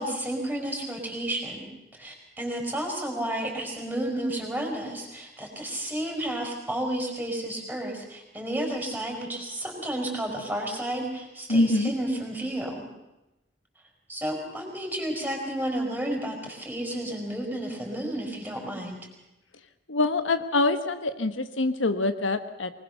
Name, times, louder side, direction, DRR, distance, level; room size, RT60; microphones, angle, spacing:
voice 1, 0.0-12.9 14.1-19.0, right 1 dB, 10° right, 1 dB, 5.3 m, -32 dB
voice 2, 11.5-11.9 19.9-22.7, left 2 dB, 75° left, 9 dB, 1.3 m, -25 dB
24.0 x 20.0 x 6.8 m, 0.94 s
head